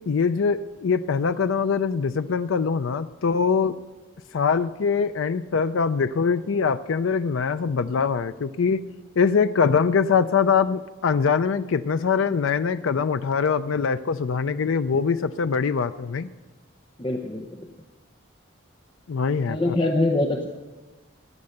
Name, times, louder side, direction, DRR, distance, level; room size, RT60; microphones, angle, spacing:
voice 1, 0.0-3.7 4.3-8.8 9.2-16.3 19.1-19.7, left 5 dB, 85° left, 12 dB, 0.5 m, -23 dB
voice 2, 17.0-17.7 19.5-20.5, left 2 dB, 25° left, 3 dB, 0.7 m, -24 dB
16.0 x 9.6 x 6.6 m, 1.2 s
head